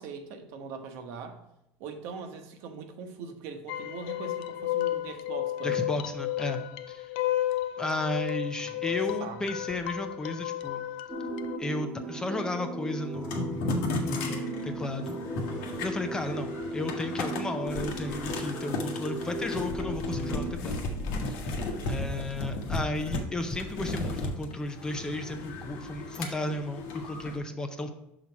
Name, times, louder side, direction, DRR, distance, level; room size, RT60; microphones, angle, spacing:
voice 1, 0.0-1.4 1.8-5.9 8.6-9.4 21.8-22.3, right 5 dB, 65° right, 6 dB, 1.0 m, -42 dB
sound 1, 3.7-11.6, left 14 dB, 90° left, 0.4 m, -32 dB
voice 2, 5.6-6.6 6.9-7.1 7.8-10.8 11.6-13.6 14.0-15.2 15.8-20.8 21.3-21.4 21.8-27.9, left 2 dB, 15° left, 7 dB, 0.6 m, -34 dB
sound 2, 11.1-20.5, right 1 dB, 25° right, 0.9 m, -36 dB
sound 3, 13.1-27.4, left 2 dB, 75° left, 1.3 m, -35 dB
6.1 x 4.1 x 5.8 m, 0.85 s
cardioid pair, 145°, 5 cm